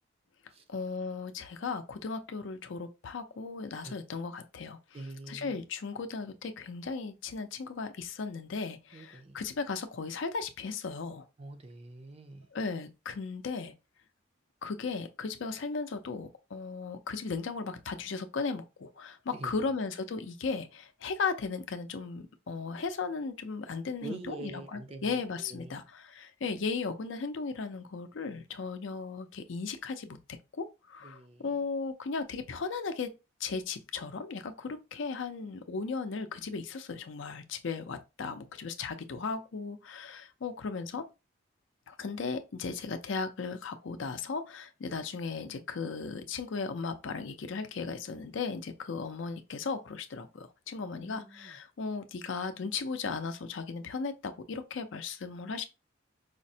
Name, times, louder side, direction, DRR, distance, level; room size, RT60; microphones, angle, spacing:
voice 1, 0.7-4.8 5.3-11.2 12.5-13.7 14.6-30.2 30.5-33.1 33.4-41.0 41.9-55.6, left 4 dB, 70° left, 0.5 m, -36 dB
voice 2, 4.9-5.6 8.9-9.5 11.4-12.5 19.3-19.8 24.0-25.8 31.0-31.5 50.8-51.6, right 2 dB, 30° right, 0.4 m, -45 dB
4.9 x 2.0 x 2.7 m
head